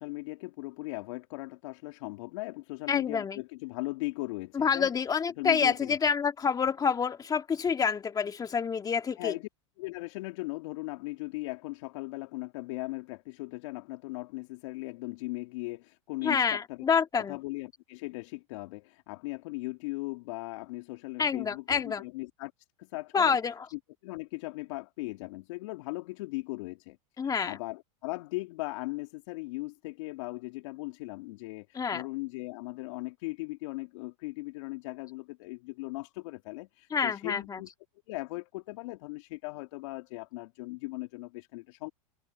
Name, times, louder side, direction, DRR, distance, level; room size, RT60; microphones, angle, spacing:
voice 1, 0.0-4.9 5.4-6.0 9.2-9.5 9.8-16.8 17.2-22.5 22.8-23.4 24.0-27.0 27.2-37.7 38.1-41.9, left 23 dB, 65° left, 2.5 m, -38 dB
voice 2, 2.9-3.4 4.5-9.3 16.2-17.4 21.2-22.0 23.1-23.7 27.2-27.5 31.8-32.0 36.9-37.6, left 6 dB, 20° left, 1.8 m, -28 dB
hypercardioid pair, 105°, 17 cm